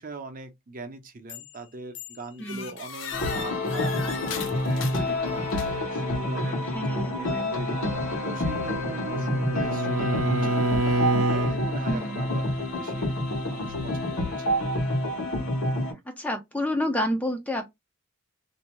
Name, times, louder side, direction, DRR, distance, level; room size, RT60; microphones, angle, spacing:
voice 1, 0.0-10.7 11.2-13.1 13.5-14.5, right 3 dB, 40° right, 0.6 m, -41 dB
sound 1, 1.3-1.6 1.9-6.0, left 7 dB, 65° left, 0.5 m, -39 dB
voice 2, 2.4-2.7 6.7-7.5 11.9-12.2 16.1-17.7, left 1 dB, 5° left, 0.3 m, -29 dB
sound 2, 3.1-15.9, left 1 dB, 85° left, 1.1 m, -28 dB
Bowed string instrument, 8.2-11.6, right 1 dB, 80° right, 0.6 m, -27 dB
2.6 x 2.2 x 3.0 m
head